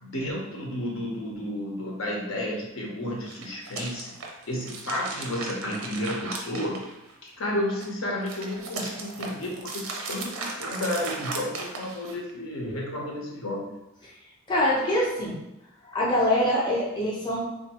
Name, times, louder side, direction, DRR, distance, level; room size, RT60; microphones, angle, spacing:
voice 1, 0.0-4.1 4.5-6.8 7.2-13.7, left 1 dB, 75° left, -2 dB, 0.9 m, -32 dB
sound 1, 3.2-7.3 7.7-12.3, right 3 dB, 85° right, 0.6 m, -37 dB
voice 2, 14.5-15.4 15.8-17.4, left 1 dB, 20° left, -6 dB, 0.7 m, -24 dB
3.5 x 2.6 x 2.9 m, 0.92 s
head